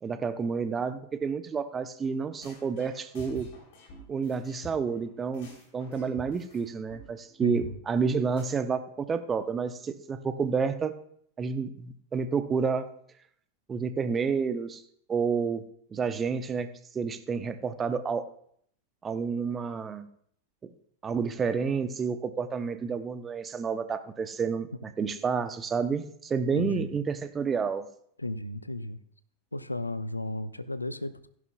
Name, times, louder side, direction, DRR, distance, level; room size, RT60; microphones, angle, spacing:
voice 1, 0.0-3.5 4.1-5.5 5.7-11.0 11.4-12.9 13.7-14.8 15.1-18.3 19.0-20.1 20.6-20.7 21.0-27.9, right 5 dB, 20° right, 11 dB, 0.8 m, -30 dB
sound 1, 2.0-2.1 2.4-5.0 5.3-6.6 6.9-7.0 7.3-7.4 7.6-7.7 8.0-8.1 8.4-8.5, equal, 50° left, 3.4 m, -47 dB
voice 2, 7.4-7.8 25.0-25.1 26.5-26.9 28.2-29.0 29.5-31.3, left 1 dB, 85° left, 15 dB, 0.5 m, -34 dB
15.0 x 11.0 x 2.3 m, 0.65 s
figure-of-eight pair, 90°, 0 cm